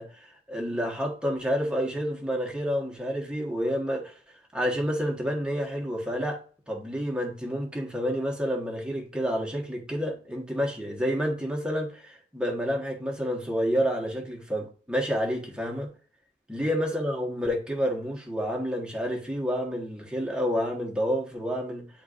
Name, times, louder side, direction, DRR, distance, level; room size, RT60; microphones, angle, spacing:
voice 1, 0.0-4.1 4.5-6.4 6.7-15.9 16.5-21.9, equal, 5° right, 1.4 m, -29 dB
10.0 x 4.0 x 2.5 m
head